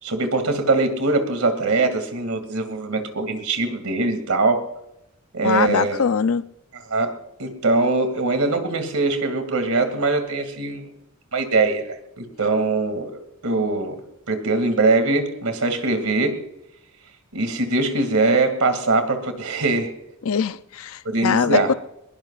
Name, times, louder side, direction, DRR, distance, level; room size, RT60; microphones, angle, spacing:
voice 1, 0.0-4.6 5.3-6.0 6.9-7.1 7.4-10.8 11.3-14.0 14.3-16.3 17.3-19.9 21.0-21.7, right 3 dB, 85° right, 2.4 m, -22 dB
voice 2, 5.4-6.5 20.2-21.7, left 6 dB, 75° left, 0.5 m, -22 dB
21.5 x 21.5 x 2.5 m
head